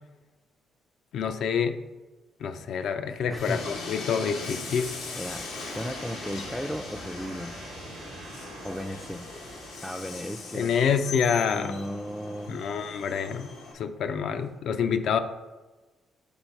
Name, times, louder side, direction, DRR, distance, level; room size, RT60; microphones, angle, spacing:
voice 1, 1.1-1.8 2.4-4.9 10.5-11.7 12.5-15.2, left 7 dB, 70° left, 9 dB, 0.4 m, -27 dB
voice 2, 3.3-3.6 5.1-7.6 8.6-9.3 9.8-10.7 11.5-12.6, equal, 5° left, 3 dB, 0.3 m, -35 dB
Train, 3.4-13.7, left 3 dB, 90° left, 1.0 m, -39 dB
sound 1, 4.8-9.8, right 3 dB, 75° right, 0.9 m, -46 dB
5.5 x 4.0 x 4.5 m, 1.2 s
cardioid pair, 90°, 0 cm